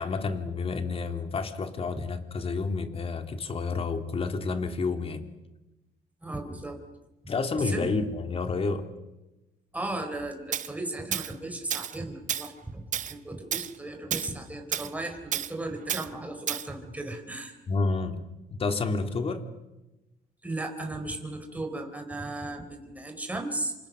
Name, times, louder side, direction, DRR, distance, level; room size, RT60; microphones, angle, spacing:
voice 1, 0.0-5.3 7.3-8.9 17.7-18.2 18.6-19.4, left 4 dB, 35° left, 7 dB, 2.8 m, -29 dB
voice 2, 6.2-6.8 7.7-7.9 9.7-17.6 20.4-23.8, right 2 dB, 10° right, 4 dB, 4.2 m, -36 dB
Tools, 10.5-10.7 11.1-11.3 11.7-12.0 12.3-12.5 12.9-13.1 13.5-13.7 14.1-14.3 14.7-14.9 15.3-15.5 15.9-16.1 16.5-16.7, right 10 dB, 50° right, 0.9 m, -31 dB
27.5 x 27.0 x 6.4 m, 1.0 s
cardioid pair, 110°, 17 cm